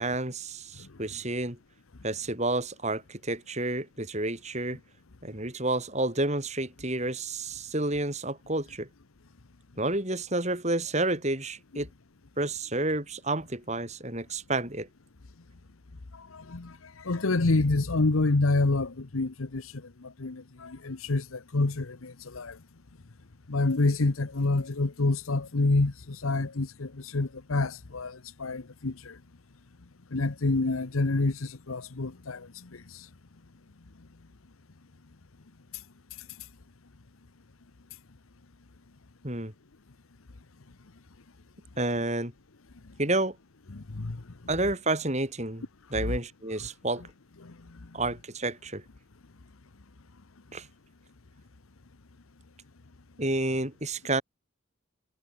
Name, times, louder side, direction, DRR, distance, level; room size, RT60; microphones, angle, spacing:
voice 1, 0.0-1.6 2.0-4.8 5.2-8.9 9.8-11.9 12.4-14.9 39.2-39.5 41.8-42.3 43.0-43.4 44.5-45.7 45.9-47.0 47.9-48.8 50.5-50.7 53.2-54.2, right 2 dB, 35° right, 4.5 m, -30 dB
voice 2, 16.3-16.7 17.0-19.6 20.0-22.6 23.5-29.2 30.1-32.5 43.7-44.2 46.0-46.1 47.4-47.5, left 2 dB, 90° left, 1.0 m, -27 dB
head